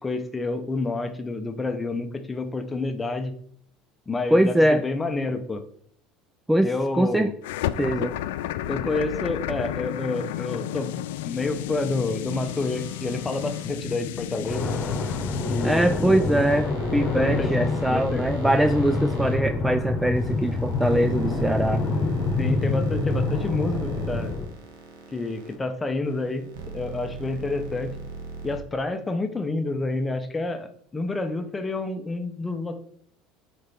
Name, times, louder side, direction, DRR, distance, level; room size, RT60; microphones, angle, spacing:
voice 1, 0.0-3.3 4.1-5.6 6.6-7.3 8.7-10.9 11.2-14.7 15.5-15.9 17.1-18.3 22.4-24.3 25.1-27.9 28.4-32.8, left 2 dB, 15° left, 8 dB, 0.8 m, -29 dB
voice 2, 4.3-4.8 6.5-7.3 7.8-8.2 15.6-21.8, right 1 dB, 5° right, 9 dB, 0.3 m, -22 dB
sound 1, 7.4-16.6, left 13 dB, 90° left, 0.3 m, -32 dB
sound 2, 12.3-13.6 16.5-19.4 20.2-25.5 26.0-28.6, right 2 dB, 85° right, 1.5 m, -39 dB
sound 3, 14.5-24.5, left 3 dB, 40° left, 1.2 m, -27 dB
6.5 x 4.3 x 3.5 m, 0.65 s
supercardioid pair, 105°, 0 cm